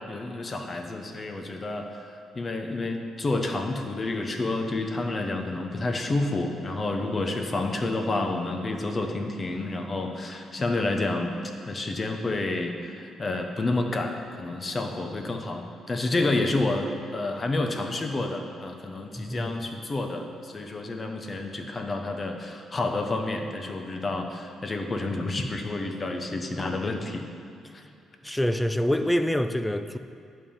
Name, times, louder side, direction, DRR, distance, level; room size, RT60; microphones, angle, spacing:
voice 1, 0.0-11.3 11.7-27.3 27.7-27.8, left 2 dB, 30° left, 4 dB, 0.9 m, -29 dB
voice 2, 19.2-19.6 27.6-27.7 28.2-30.0, equal, 5° left, 10 dB, 0.4 m, -26 dB
11.0 x 3.7 x 7.0 m, 2.5 s
cardioid pair, 90°, 0 cm